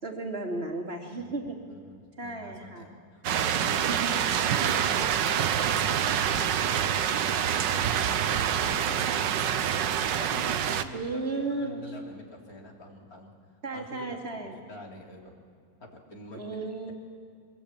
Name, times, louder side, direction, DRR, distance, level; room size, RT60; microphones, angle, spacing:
voice 1, 0.0-1.6 2.2-2.9 3.9-4.1 10.9-11.8 13.6-14.6 16.3-16.9, right 3 dB, 30° right, 1 dB, 3.0 m, -34 dB
voice 2, 1.7-4.0 4.6-7.1 8.0-11.0 11.5-13.3 13.7-15.3 15.8-16.6, left 1 dB, 50° left, 1 dB, 3.7 m, -45 dB
sound 1, 3.2-10.8, right 9 dB, 70° right, 1.6 m, -26 dB
24.5 x 21.5 x 8.8 m, 2.2 s
omnidirectional pair, 2.0 m